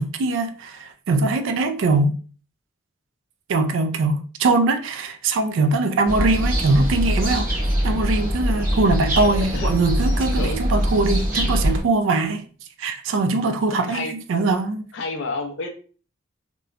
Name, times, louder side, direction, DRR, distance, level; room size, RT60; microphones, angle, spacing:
voice 1, 0.0-2.1 3.5-7.5 7.8-12.4 12.8-14.9, right 3 dB, 75° right, 0.3 m, -22 dB
sound 1, 6.1-11.8, equal, 45° right, 0.8 m, -23 dB
voice 2, 14.9-15.7, left 3 dB, 65° left, 0.5 m, -29 dB
2.9 x 2.1 x 2.3 m
head